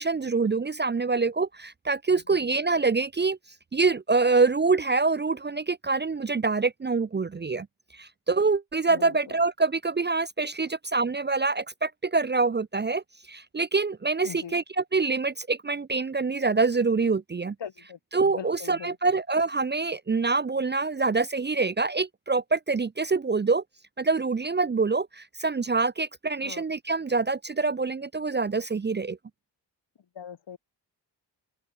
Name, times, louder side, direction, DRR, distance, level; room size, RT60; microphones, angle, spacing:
voice 1, 0.0-3.4 3.7-7.7 7.9-17.6 18.1-23.6 24.0-29.2, right 4 dB, 25° right, 0.5 m, -25 dB
voice 2, 14.2-14.6 17.6-18.0 18.3-19.0 26.4-26.6 30.1-30.6, left 8 dB, 75° left, 4.4 m, -40 dB
open air
cardioid pair, 85°, 43 cm